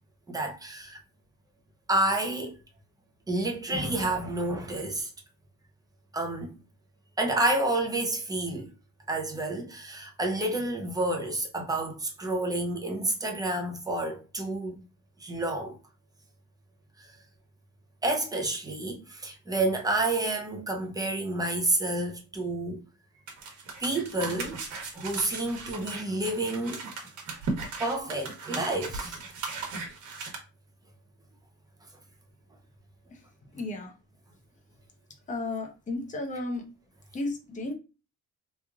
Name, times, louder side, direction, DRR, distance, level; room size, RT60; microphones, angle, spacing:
voice 1, 0.3-1.0 1.9-2.6 3.3-5.1 6.1-6.6 7.2-8.7 9.1-14.9 15.2-15.8 17.0-17.1 18.0-22.8 23.8-24.6 24.9-26.8 27.8-29.2, right 2 dB, 10° right, 0.7 m, -29 dB
sound 1, 23.3-30.3, right 4 dB, 70° right, 1.2 m, -37 dB
voice 2, 33.5-33.9 35.3-36.7 37.1-37.7, left 2 dB, 25° left, 0.8 m, -33 dB
3.2 x 2.5 x 3.5 m
cardioid pair, 140°, 31 cm